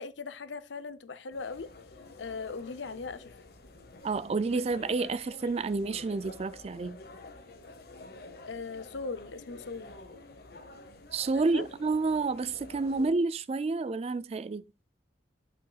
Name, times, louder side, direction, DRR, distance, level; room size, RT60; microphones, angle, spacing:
voice 1, 0.0-1.7 2.2-3.3 8.4-10.0 11.3-11.7, left 4 dB, 80° left, 0.7 m, -39 dB
sound 1, 1.3-13.1, left 2 dB, 55° left, 1.1 m, -49 dB
voice 2, 4.0-7.0 11.1-14.6, right 3 dB, 35° right, 0.3 m, -29 dB
11.0 x 5.6 x 2.3 m
head